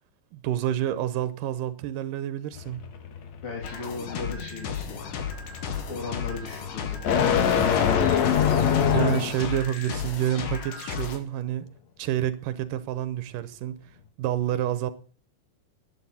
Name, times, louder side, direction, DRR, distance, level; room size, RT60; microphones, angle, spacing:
voice 1, 0.3-2.9 8.8-11.7 12.0-13.8 14.2-14.9, right 11 dB, 85° right, 2.5 m, -28 dB
sound 1, 2.5-9.5, left 8 dB, 60° left, 2.7 m, -25 dB
voice 2, 3.4-5.0 5.9-7.2 7.5-8.0, left 4 dB, 40° left, 3.6 m, -37 dB
sound 2, 3.6-11.2, left 7 dB, 85° left, 3.5 m, -34 dB
11.5 x 9.9 x 8.3 m
omnidirectional pair, 3.7 m